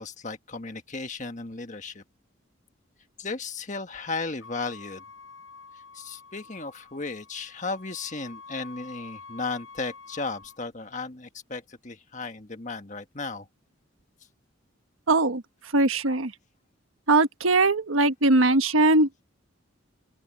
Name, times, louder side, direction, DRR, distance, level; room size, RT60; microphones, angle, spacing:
voice 1, 0.0-2.0 3.2-5.0 5.9-13.5, left 3 dB, 35° left, 1.5 m, -35 dB
Trumpet, 4.4-10.6, left 4 dB, 80° left, 4.3 m, -48 dB
voice 2, 15.1-15.4 15.7-16.3 17.1-19.2, right 2 dB, 85° right, 1.3 m, -21 dB
open air
head